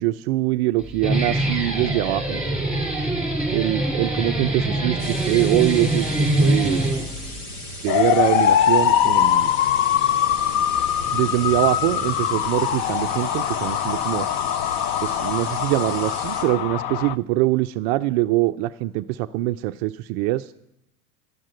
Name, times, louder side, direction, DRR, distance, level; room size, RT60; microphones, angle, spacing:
voice 1, 0.0-2.4 3.5-6.9 7.8-9.5 11.1-14.3 15.0-20.5, right 17 dB, 45° right, 11 dB, 0.4 m, -23 dB
Guitar, 0.8-7.4, right 1 dB, ahead, 2.9 m, -24 dB
sound 1, 5.0-16.4, left 1 dB, 80° left, 2.5 m, -36 dB
sound 2, 7.9-17.1, left 10 dB, 30° left, 0.4 m, -22 dB
11.0 x 7.4 x 9.1 m, 0.86 s
hypercardioid pair, 85°, 44 cm